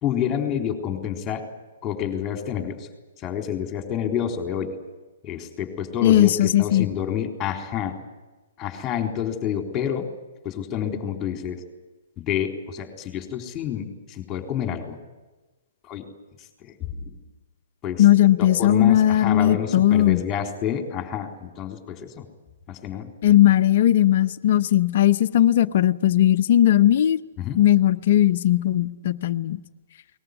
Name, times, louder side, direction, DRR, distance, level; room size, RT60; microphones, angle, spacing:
voice 1, 0.0-1.5 1.8-2.9 3.2-4.7 5.2-7.9 8.6-10.1 10.4-11.6 12.2-15.0 15.9-16.1 17.0-17.1 17.8-18.0 18.4-22.2 22.7-23.1 27.4-27.6, left 9 dB, 20° left, 4 dB, 3.9 m, -28 dB
voice 2, 6.0-6.9 18.0-20.2 23.2-27.2 27.6-29.6, left 12 dB, 50° left, 11 dB, 0.8 m, -18 dB
21.5 x 20.0 x 9.7 m, 1.2 s
figure-of-eight pair, 120°, 0 cm